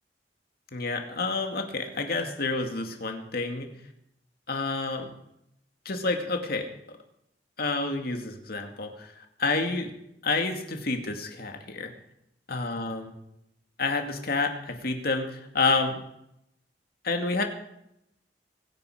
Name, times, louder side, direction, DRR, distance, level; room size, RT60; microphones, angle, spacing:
voice 1, 0.7-3.7 4.5-5.1 5.8-6.7 7.6-9.9 10.2-11.9 12.5-13.1 13.8-16.0 17.0-17.4, left 3 dB, 60° left, 4 dB, 2.4 m, -29 dB
23.5 x 10.5 x 5.0 m, 0.80 s
head